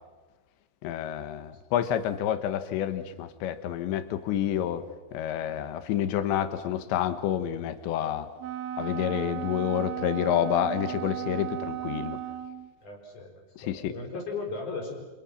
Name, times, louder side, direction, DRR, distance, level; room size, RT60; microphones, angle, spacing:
voice 1, 0.8-4.8 5.1-8.3 8.8-12.2 13.6-13.9, left 10 dB, 80° left, 11 dB, 3.6 m, -29 dB
Wind instrument woodwind instrument, 8.4-12.7, right 13 dB, 85° right, 3.8 m, -35 dB
voice 2, 12.8-15.0, left 4 dB, 45° left, 2 dB, 5.8 m, -37 dB
29.0 x 27.0 x 5.9 m, 1.3 s
omnidirectional pair, 5.2 m